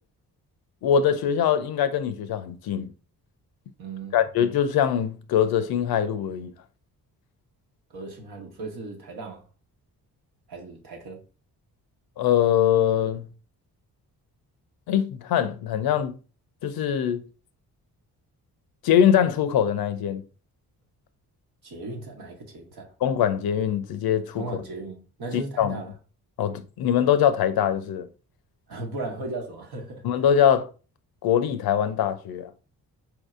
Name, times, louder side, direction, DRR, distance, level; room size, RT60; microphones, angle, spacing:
voice 1, 0.8-2.9 4.1-6.5 12.2-13.3 14.9-16.2 16.6-17.2 18.8-20.2 23.0-24.4 25.3-25.8 26.4-28.1 30.0-30.7 31.2-32.5, left 9 dB, 70° left, 0.5 m, -23 dB
voice 2, 3.8-4.3 7.9-9.4 10.5-11.2 21.6-22.9 24.3-25.9 28.7-30.0, right 2 dB, 75° right, 1.1 m, -36 dB
4.4 x 2.7 x 2.4 m
cardioid pair, 65°, 39 cm